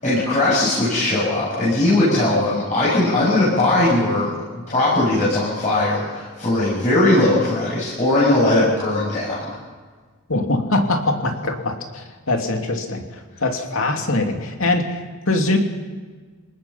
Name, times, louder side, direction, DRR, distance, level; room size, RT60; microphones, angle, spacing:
voice 1, 0.0-4.3 4.7-9.6, left 2 dB, 30° left, -9 dB, 7.8 m, -19 dB
voice 2, 10.3-15.6, left 2 dB, 65° left, 3 dB, 2.8 m, -22 dB
28.0 x 19.5 x 5.9 m, 1.5 s
head